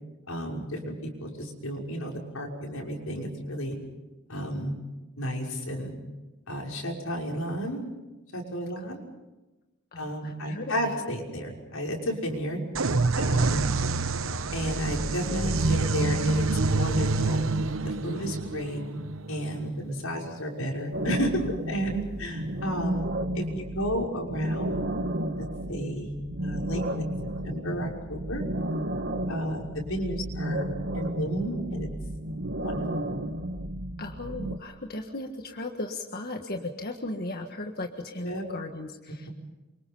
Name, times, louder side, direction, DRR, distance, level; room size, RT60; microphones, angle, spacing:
voice 1, 0.3-3.8 4.3-4.8 5.2-5.9 6.5-7.8 8.3-9.0 9.9-12.6 13.2-13.7 14.5-17.4 17.8-18.8 19.3-24.8 25.4-27.0 27.4-28.4 29.3-31.9 32.6-32.9 38.2-38.4 39.1-39.3, equal, 80° left, 0 dB, 6.1 m, -32 dB
voice 2, 9.9-11.0 13.4-13.8 34.0-39.3, left 2 dB, 50° left, 4 dB, 1.7 m, -37 dB
sound 1, 12.8-20.3, right 3 dB, 70° right, 1.0 m, -27 dB
sound 2, 20.9-34.6, right 1 dB, 55° right, 1.7 m, -33 dB
28.5 x 25.0 x 5.7 m, 1.1 s
head